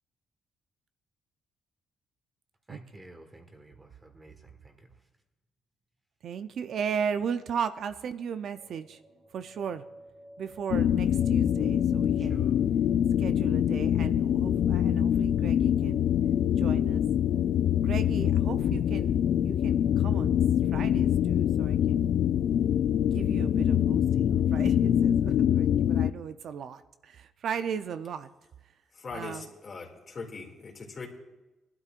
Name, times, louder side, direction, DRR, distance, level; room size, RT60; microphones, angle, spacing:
voice 1, 2.7-4.9 12.2-12.6, right 1 dB, 20° right, 1.6 m, -52 dB
voice 2, 6.2-9.0 9.3-9.8 10.4-12.5 13.2-16.1 16.6-17.0 17.8-20.4 20.7-22.1 23.1-28.3 29.1-29.4, right 7 dB, 65° right, 0.5 m, -36 dB
sound 1, 8.5-25.8, right 1 dB, 45° right, 2.7 m, -54 dB
sound 2, 10.7-26.1, left 10 dB, 70° left, 0.4 m, -25 dB
voice 3, 28.9-31.1, left 4 dB, 45° left, 2.4 m, -41 dB
19.5 x 12.0 x 2.5 m
cardioid pair, 90°, 0 cm